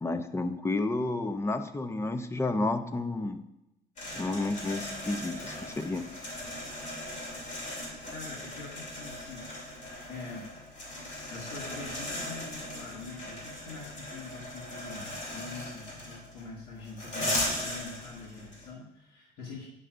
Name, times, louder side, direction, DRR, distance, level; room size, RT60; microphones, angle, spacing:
voice 1, 0.0-3.4 4.2-6.1, left 2 dB, 15° left, 10 dB, 0.5 m, -31 dB
sound 1, 4.0-18.7, left 1 dB, 45° left, 2.9 m, -38 dB
voice 2, 8.1-9.5 10.1-10.5 11.3-19.7, left 3 dB, 80° left, -6 dB, 1.8 m, -44 dB
9.0 x 6.7 x 2.5 m, 0.92 s
cardioid pair, 110°, 17 cm